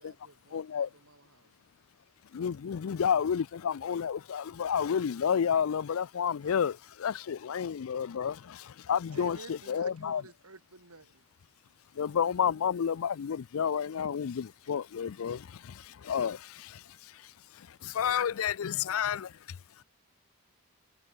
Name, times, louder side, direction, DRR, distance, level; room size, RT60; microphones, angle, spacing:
voice 1, 0.0-1.7, right 2 dB, 65° right, 5.4 m, -62 dB
voice 2, 0.5-0.9 2.3-10.2 11.9-19.6, left 7 dB, 65° left, 0.4 m, -31 dB
voice 3, 9.1-11.2, right 3 dB, 85° right, 3.4 m, -50 dB
head